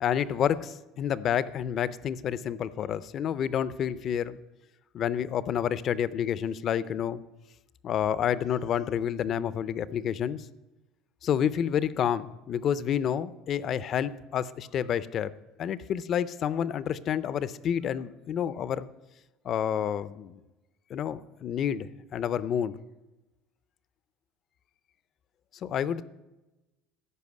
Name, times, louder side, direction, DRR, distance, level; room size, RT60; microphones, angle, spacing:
voice 1, 0.0-4.4 4.9-7.2 7.8-10.4 11.2-15.3 15.6-18.9 19.4-20.4 20.9-22.8 25.6-26.0, left 9 dB, 35° left, 17 dB, 0.5 m, -29 dB
14.0 x 5.6 x 9.5 m, 1.0 s
cardioid pair, 160°, 0 cm